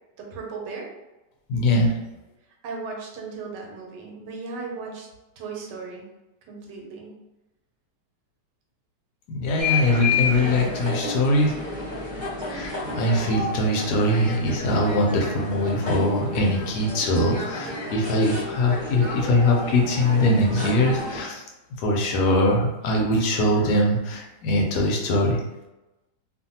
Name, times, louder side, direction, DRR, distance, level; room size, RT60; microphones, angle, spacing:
voice 1, 0.2-0.9 2.6-5.1 5.4-6.0 6.5-7.1, right 4 dB, 80° right, 0 dB, 1.2 m, -36 dB
voice 2, 1.5-1.9 9.3-11.5 12.5-21.4 21.8-25.4, left 1 dB, 75° left, 0 dB, 1.1 m, -22 dB
sound 1, 9.6-21.2, left 3 dB, 35° right, 0.7 m, -31 dB
2.6 x 2.5 x 2.7 m, 1.0 s
omnidirectional pair, 1.9 m